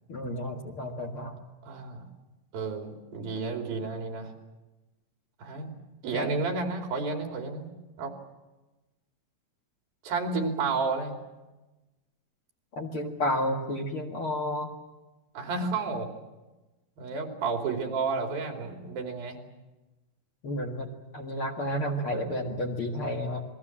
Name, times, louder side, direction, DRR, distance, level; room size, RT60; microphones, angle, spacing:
voice 1, 0.1-1.4 6.1-6.4 12.7-14.7 20.4-20.9 21.1-23.4, left 1 dB, 45° left, 2 dB, 2.3 m, -31 dB
voice 2, 1.6-2.0 2.5-4.3 5.4-5.7 6.0-7.7 8.0-8.1 10.0-11.2 15.3-16.1 17.0-19.4, right 4 dB, 80° right, 3 dB, 4.8 m, -31 dB
28.5 x 21.5 x 7.4 m, 1.1 s
omnidirectional pair, 4.1 m